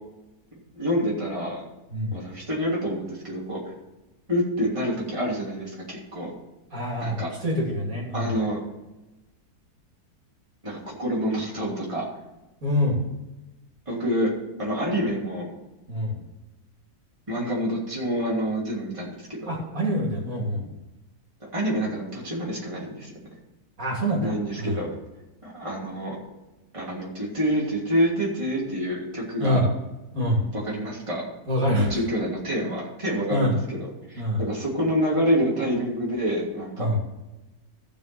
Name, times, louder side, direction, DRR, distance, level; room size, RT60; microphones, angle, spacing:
voice 1, 0.7-1.6 2.1-3.6 4.3-6.3 7.0-7.3 8.1-8.6 10.6-12.1 13.9-14.3 14.6-15.5 17.3-19.6 21.5-23.1 24.2-24.9 25.4-26.2 26.7-29.7 30.5-31.2 31.7-33.8 34.1-36.9, equal, 20° right, -5 dB, 3.0 m, -27 dB
voice 2, 1.9-2.2 6.7-8.3 12.6-13.0 15.9-16.2 19.5-20.7 23.8-24.3 24.6-24.8 29.4-29.7 30.1-30.5 31.5-31.9 33.3-33.5 34.2-34.5 36.8-37.0, equal, 60° right, -2 dB, 3.1 m, -25 dB
14.5 x 5.3 x 6.1 m, 1.0 s
omnidirectional pair, 1.6 m